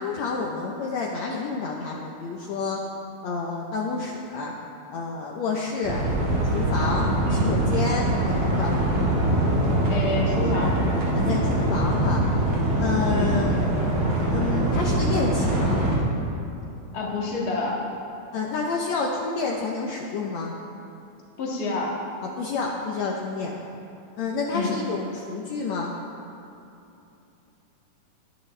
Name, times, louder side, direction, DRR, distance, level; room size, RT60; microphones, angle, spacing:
voice 1, 0.0-2.8 3.2-4.5 4.9-6.0 6.4-8.8 11.1-12.2 12.8-13.6 14.3-15.8 18.3-20.5 22.4-23.5 24.2-25.9, left 4 dB, 70° left, -2 dB, 1.9 m, -29 dB
sound 1, 5.8-15.9, right 1 dB, 85° right, 3.9 m, -23 dB
voice 2, 9.9-10.7 13.1-13.3 16.9-17.8 21.4-21.9 24.5-24.7, left 3 dB, 35° left, -3 dB, 1.8 m, -28 dB
20.0 x 11.0 x 3.3 m, 2.9 s
omnidirectional pair, 3.7 m